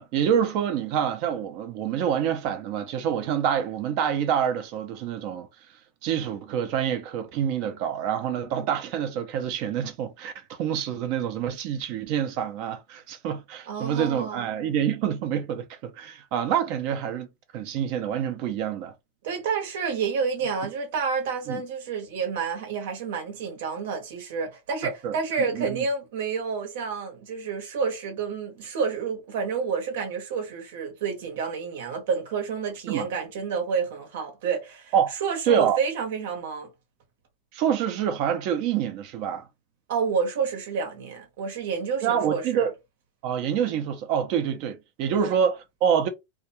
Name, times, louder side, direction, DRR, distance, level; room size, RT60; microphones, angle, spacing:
voice 1, 0.0-5.5 6.0-17.3 17.5-18.9 21.5-21.6 25.0-25.8 32.9-33.1 34.9-35.1 35.5-35.8 37.5-39.5 42.0-42.7 43.2-46.1, right 8 dB, 50° right, 0.6 m, -26 dB
voice 2, 13.7-14.5 19.2-34.9 35.2-36.7 39.9-42.7 45.1-45.3, right 5 dB, 70° right, 1.0 m, -29 dB
2.3 x 2.3 x 2.9 m
supercardioid pair, 145°, 0 cm